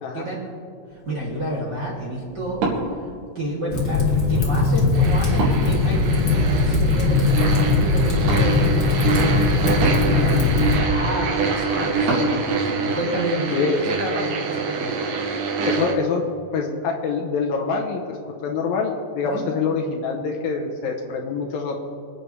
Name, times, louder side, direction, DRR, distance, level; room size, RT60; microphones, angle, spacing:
voice 1, 0.1-0.5 1.0-3.0 3.3-15.0 19.2-19.4, right 1 dB, 30° right, -6 dB, 2.8 m, -30 dB
Wood, 0.9-12.4, right 2 dB, 85° right, 4.2 m, -32 dB
Fire, 3.7-10.8, left 3 dB, 35° left, 1.6 m, -20 dB
sound 1, 4.9-15.9, right 4 dB, 65° right, 2.5 m, -26 dB
voice 2, 13.5-13.8 15.6-16.2 16.5-21.8, left 5 dB, 75° left, 1 dB, 2.5 m, -25 dB
25.5 x 8.8 x 3.4 m, 2.4 s
omnidirectional pair, 4.5 m